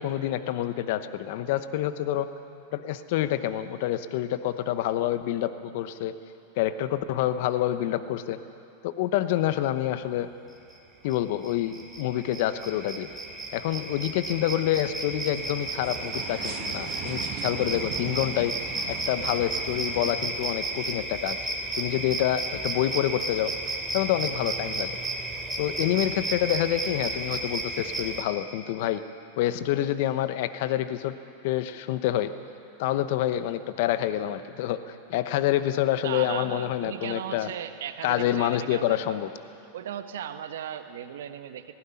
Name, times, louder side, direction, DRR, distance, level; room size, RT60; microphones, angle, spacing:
voice 1, 0.0-2.3 2.7-6.1 6.6-8.4 8.8-10.3 11.0-13.1 13.5-18.6 18.9-21.4 21.8-23.5 23.9-25.0 25.6-29.0 29.4-31.2 31.4-32.3 32.8-37.5 38.0-39.3, left 12 dB, 60° left, 11 dB, 0.9 m, -27 dB
sound 1, 10.0-10.6 10.9-20.1, right 8 dB, 50° right, 2.0 m, -42 dB
sound 2, 11.1-11.2 11.4-28.2, right 2 dB, 10° right, 3.0 m, -33 dB
voice 2, 36.0-39.2 39.7-41.7, right 9 dB, 70° right, 9 dB, 1.3 m, -37 dB
18.5 x 16.0 x 9.7 m, 2.8 s
hypercardioid pair, 105°, 0 cm